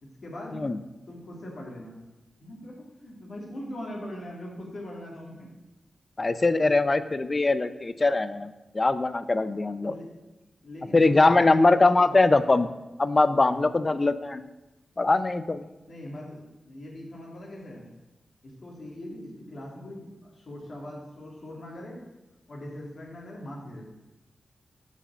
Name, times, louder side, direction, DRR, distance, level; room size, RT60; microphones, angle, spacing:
voice 1, 0.0-0.6 1.1-2.0 2.4-5.5 7.1-7.3 9.8-10.1 10.6-12.2 13.4-13.7 15.9-17.9 18.4-22.0 22.5-23.8, left 1 dB, 65° left, -2 dB, 2.5 m, -41 dB
voice 2, 6.2-9.9 10.9-12.7 13.0-14.4 15.0-15.7, left 3 dB, 40° left, 13 dB, 0.5 m, -22 dB
6.9 x 4.9 x 7.1 m, 1.0 s
cardioid pair, 55°, 0 cm